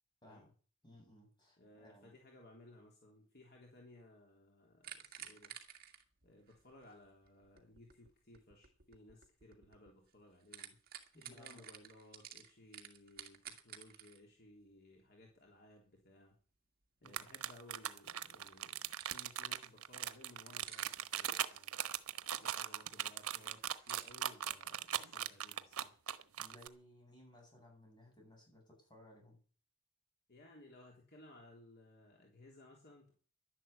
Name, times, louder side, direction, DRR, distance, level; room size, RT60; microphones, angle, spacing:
voice 1, 0.2-0.5 0.8-2.2 11.1-11.6 17.0-17.3 26.4-29.4, left 1 dB, 20° left, 1 dB, 7.8 m, -60 dB
voice 2, 1.6-5.6 6.2-10.8 11.2-16.3 17.0-21.9 22.4-26.0 30.3-33.1, left 1 dB, 50° left, 0 dB, 3.5 m, -60 dB
sound 1, 4.8-10.1 10.4-14.2 18.5-19.4 19.8-19.9 20.3-21.0 23.5-24.1, right 10 dB, 45° right, 2.0 m, -53 dB
sound 2, 17.1-26.7, right 10 dB, 85° right, 1.1 m, -39 dB
11.5 x 11.0 x 8.3 m, 0.40 s
head